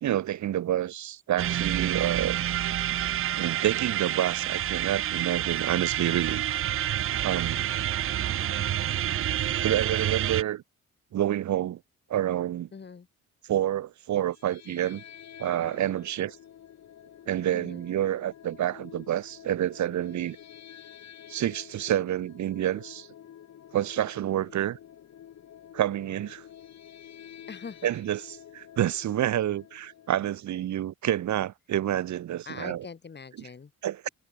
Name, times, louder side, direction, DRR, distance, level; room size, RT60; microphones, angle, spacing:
voice 1, 0.0-2.4 3.4-6.4 7.2-7.7 9.6-10.6 11.1-11.8 12.1-12.7 13.5-15.0 15.4-16.4 17.3-20.4 21.3-23.1 23.7-24.8 25.7-26.4 27.8-32.9 33.4-33.5 33.8-34.1, right 12 dB, 70° right, 1.9 m, -28 dB
sound 1, 1.4-10.4, right 11 dB, 45° right, 0.5 m, -28 dB
voice 2, 12.7-13.1 17.5-17.8 27.5-27.9 32.5-33.7, left 5 dB, 35° left, 3.8 m, -42 dB
sound 2, 14.3-30.4, left 10 dB, 65° left, 3.9 m, -49 dB
cardioid pair, 90°, 30 cm